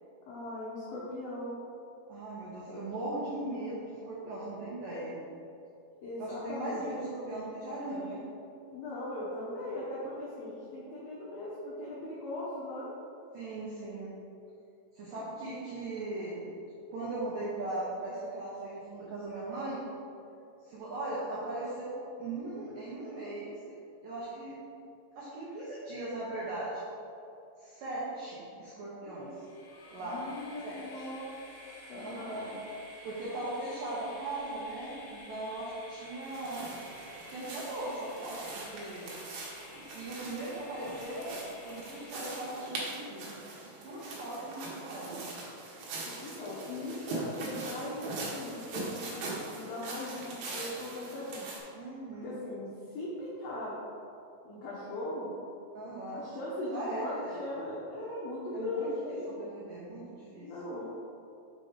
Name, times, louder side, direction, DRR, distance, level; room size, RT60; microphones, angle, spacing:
voice 1, 0.3-1.6 6.0-6.9 8.7-12.9 29.1-29.3 30.0-31.3 31.9-32.6 46.0-51.4 52.2-53.7 54.4-55.3 56.1-59.3 60.4-60.9, left 1 dB, 80° left, -7 dB, 2.1 m, -39 dB
voice 2, 2.1-5.2 6.2-8.2 13.3-14.1 14.9-16.5 16.9-19.8 20.6-23.5 24.0-24.6 25.2-26.8 27.6-29.5 29.9-30.2 30.6-31.1 31.9-32.5 33.0-36.6 37.3-39.1 39.7-43.4 43.8-45.3 51.7-52.4 55.7-56.3 56.7-57.4 58.5-60.5, right 2 dB, 90° right, -8 dB, 1.9 m, -39 dB
Train, 29.3-42.8, left 1 dB, 65° left, 1.5 m, -51 dB
sound 1, 36.2-51.6, right 3 dB, 70° right, 2.5 m, -42 dB
6.7 x 5.3 x 5.1 m, 2.6 s
omnidirectional pair, 5.8 m